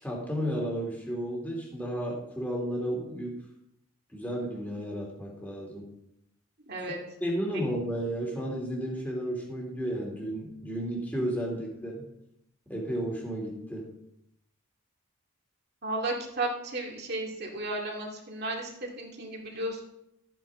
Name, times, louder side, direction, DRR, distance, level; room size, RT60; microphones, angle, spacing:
voice 1, 0.0-3.4 4.1-5.9 7.2-12.0 12.7-13.9, equal, 10° left, -2 dB, 2.9 m, -33 dB
voice 2, 6.7-7.0 15.8-18.7 19.0-19.8, right 2 dB, 45° right, 0 dB, 2.2 m, -33 dB
14.0 x 8.9 x 3.7 m, 0.80 s
head